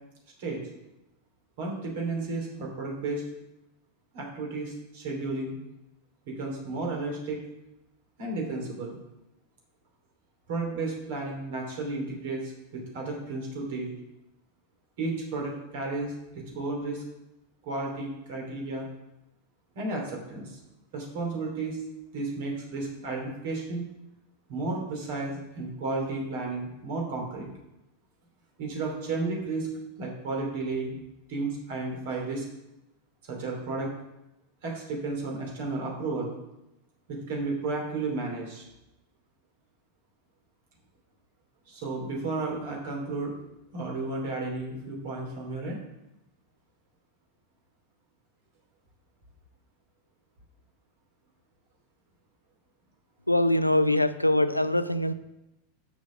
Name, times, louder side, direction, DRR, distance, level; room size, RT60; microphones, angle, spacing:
voice 1, 1.6-3.2 4.1-5.6 6.3-7.4 8.2-9.0 10.5-13.9 15.0-17.0 17.6-18.8 19.7-20.6 20.9-21.8 22.1-23.8 24.5-27.5 28.6-29.7 30.0-31.0 31.3-32.4 33.3-33.9 34.6-36.3 37.1-38.6 41.7-43.3 43.7-45.8, right 3 dB, 55° right, 0 dB, 2.8 m, -33 dB
voice 2, 53.3-55.1, left 1 dB, 90° left, 12 dB, 0.4 m, -23 dB
6.9 x 6.1 x 5.8 m, 0.91 s
figure-of-eight pair, 90°, 0 cm